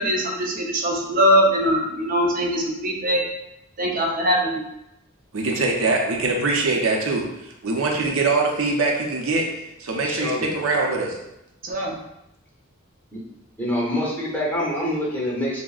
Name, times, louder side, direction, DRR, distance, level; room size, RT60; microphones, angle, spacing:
voice 1, 0.0-3.2 3.8-4.6 11.6-12.0, equal, 40° right, -1 dB, 0.7 m, -21 dB
voice 2, 5.3-9.5 9.8-11.2, right 3 dB, 80° right, 0 dB, 0.6 m, -23 dB
voice 3, 10.0-10.5 13.1-13.2 13.6-15.6, left 1 dB, 10° left, -4 dB, 0.8 m, -26 dB
6.0 x 2.0 x 2.4 m, 0.87 s
head